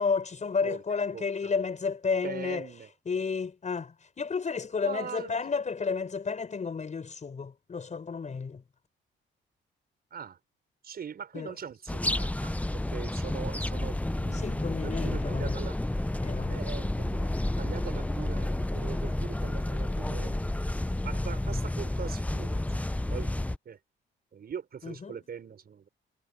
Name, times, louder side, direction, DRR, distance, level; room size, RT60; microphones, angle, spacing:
voice 1, 0.0-2.7 3.1-8.6 11.3-11.5 14.3-15.6 16.2-16.6 24.8-25.2, left 5 dB, 35° left, 5.5 m, -32 dB
voice 2, 2.2-2.9 4.6-5.4 10.1-10.4 10.8-15.8 16.5-17.3 17.6-20.6 21.0-23.3 23.6-23.8 24.3-25.9, right 7 dB, 50° right, 6.4 m, -41 dB
sound 1, 11.9-23.6, left 1 dB, 5° left, 0.9 m, -30 dB
cardioid pair, 90°, 20 cm